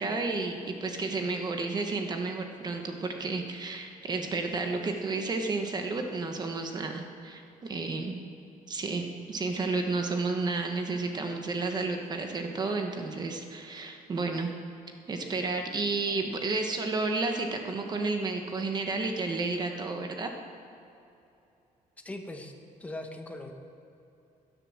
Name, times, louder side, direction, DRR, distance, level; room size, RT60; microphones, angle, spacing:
voice 1, 0.0-8.2 8.7-14.5 15.1-20.3, right 3 dB, 30° right, 4 dB, 1.2 m, -31 dB
voice 2, 22.0-22.5 22.8-23.5, left 1 dB, 10° left, 3 dB, 1.2 m, -39 dB
17.0 x 11.0 x 7.3 m, 2.8 s
cardioid pair, 175°, 15 cm